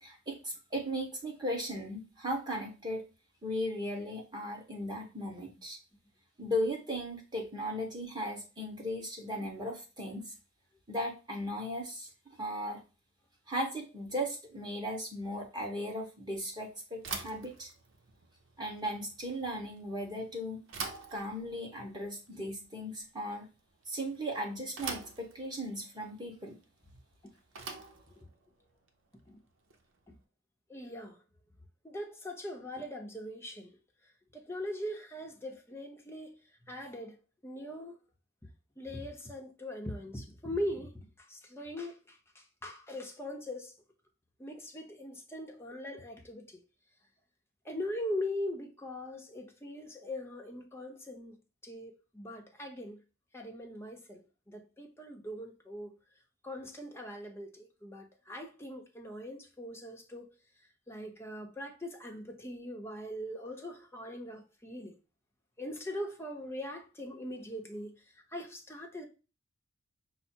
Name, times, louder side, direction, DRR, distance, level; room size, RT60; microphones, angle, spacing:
voice 1, 0.0-3.0 3.4-5.8 6.4-10.3 10.9-12.1 12.4-12.8 13.5-17.7 18.6-20.6 21.1-23.5 23.9-26.5, equal, 20° right, 1.3 m, -37 dB
Bicycle / Thump thud, 17.0-30.1, right 4 dB, 65° right, 0.8 m, -46 dB
voice 2, 30.7-31.2 31.8-33.8 34.3-36.3 36.7-37.2 37.4-38.0 38.8-43.7 44.4-46.6 47.6-51.4 51.6-53.0 53.3-55.9 56.4-60.3 60.9-65.0 65.6-68.0 68.3-69.0, left 1 dB, 10° left, 0.8 m, -41 dB
5.5 x 2.1 x 4.4 m
head